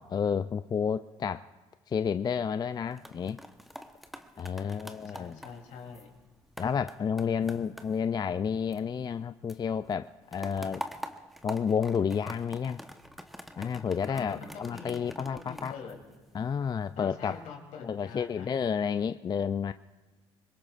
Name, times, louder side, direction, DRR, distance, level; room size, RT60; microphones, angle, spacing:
voice 1, 0.0-1.5 1.9-3.4 4.4-5.4 6.6-10.8 11.4-12.8 13.6-15.7 16.3-17.4 17.8-19.7, left 7 dB, 30° left, 12 dB, 0.4 m, -30 dB
sound 1, 2.7-9.2 9.5-16.7 17.2-17.5, equal, ahead, 1.0 m, -46 dB
voice 2, 4.5-6.1 14.1-15.9 16.9-18.5, left 6 dB, 75° left, 1 dB, 3.2 m, -45 dB
25.0 x 21.5 x 2.5 m, 1.3 s
supercardioid pair, 75°, 13 cm